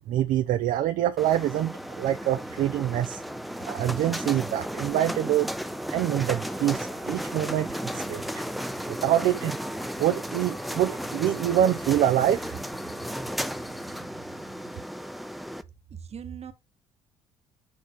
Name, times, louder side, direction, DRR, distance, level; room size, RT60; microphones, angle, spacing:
voice 1, 0.1-3.2 3.6-5.5 5.9-8.4 8.9-9.6 10.0-12.5, right 12 dB, 60° right, 0.5 m, -25 dB
sound 1, 1.2-15.6, equal, ahead, 0.6 m, -34 dB
voice 2, 15.9-16.5, right 7 dB, 40° right, 1.2 m, -40 dB
6.5 x 3.8 x 4.6 m
hypercardioid pair, 50°, 16 cm